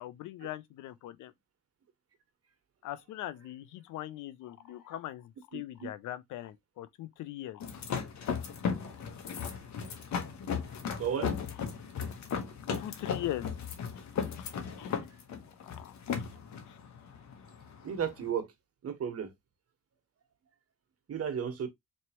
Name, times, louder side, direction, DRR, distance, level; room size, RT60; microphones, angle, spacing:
voice 1, 0.0-1.3 2.8-7.6 12.8-13.5 14.4-14.5 14.8-15.0 15.6-16.3 16.7-16.8, left 13 dB, 80° left, 0.6 m, -41 dB
voice 2, 5.5-5.9 11.0-11.3 17.8-18.5 18.8-19.3 21.1-21.7, right 8 dB, 50° right, 1.3 m, -34 dB
sound 1, 7.6-18.3, left 6 dB, 65° left, 1.2 m, -36 dB
4.4 x 3.2 x 2.9 m
cardioid pair, 90°, 30 cm